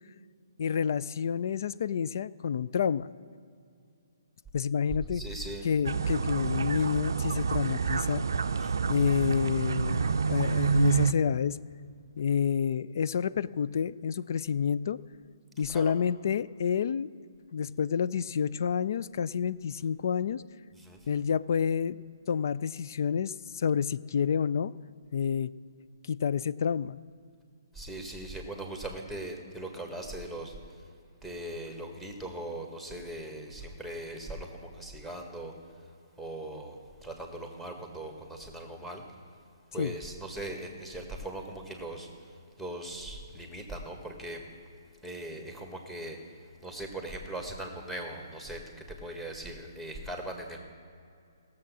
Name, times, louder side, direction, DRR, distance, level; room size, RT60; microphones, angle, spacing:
voice 1, 0.6-3.1 4.5-5.2 5.6-8.2 8.9-11.6 12.2-15.0 15.6-17.1 17.5-20.4 21.1-22.0 22.3-24.7 25.1-25.5 26.1-27.0 39.8-39.9, left 7 dB, 55° left, 17 dB, 0.4 m, -29 dB
voice 2, 5.1-5.6 7.9-8.0 8.6-8.7 15.7-15.9 20.8-21.0 27.7-30.5 31.2-35.5 36.2-39.0 39.7-42.1 42.6-44.4 45.0-46.2 46.6-48.6 48.9-50.6, right 1 dB, 5° left, 2 dB, 1.5 m, -39 dB
sound 1, 5.8-11.1, right 5 dB, 70° right, 0.4 m, -28 dB
17.0 x 7.2 x 6.2 m, 2.4 s
figure-of-eight pair, 135°, 2 cm